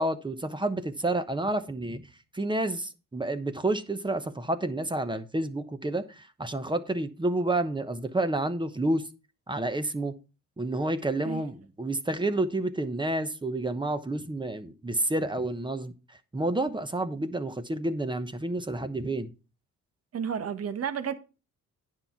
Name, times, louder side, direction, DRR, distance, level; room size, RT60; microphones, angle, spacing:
voice 1, 0.0-2.1 2.3-9.0 9.5-10.1 10.6-19.3, right 2 dB, 15° right, 1.0 m, -29 dB
voice 2, 20.1-21.1, right 7 dB, 55° right, 1.3 m, -31 dB
9.8 x 5.7 x 4.6 m
cardioid pair, 90°, 30 cm